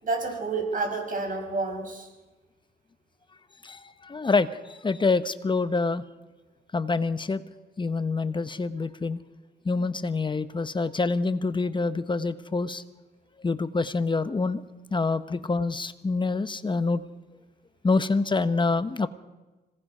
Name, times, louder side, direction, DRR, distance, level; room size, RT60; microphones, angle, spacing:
voice 1, 0.0-2.1, right 3 dB, 45° right, 4 dB, 6.2 m, -29 dB
voice 2, 3.6-6.0 6.7-7.4 7.8-9.2 9.6-12.8 13.4-14.6 14.9-17.0 17.8-19.1, left 3 dB, 25° left, 12 dB, 1.0 m, -26 dB
26.0 x 18.0 x 5.6 m, 1.2 s
cardioid pair, 90°, 20 cm